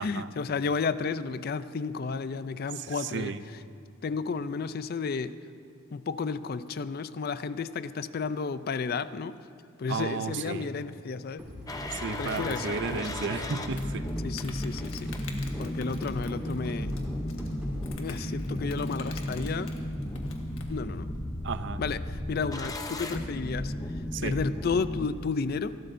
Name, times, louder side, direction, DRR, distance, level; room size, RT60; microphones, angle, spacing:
voice 1, 0.0-3.6 4.0-5.4 5.9-9.4 9.8-11.4 12.2-13.1 14.2-15.1 15.6-16.9 17.9-19.7 20.7-21.1 21.8-23.7 24.2-25.8, left 5 dB, 45° left, 14 dB, 0.3 m, -32 dB
voice 2, 2.8-3.4 9.9-10.7 11.9-14.1 21.4-21.8 24.1-24.4, right 5 dB, 55° right, 12 dB, 0.5 m, -33 dB
sound 1, 11.4-17.9, equal, 5° right, 3.4 m, -42 dB
sound 2, 11.7-25.1, left 1 dB, 15° left, 0.6 m, -34 dB
Insect, 12.2-20.7, left 4 dB, 70° left, 1.4 m, -49 dB
27.0 x 12.5 x 2.6 m, 2.5 s
head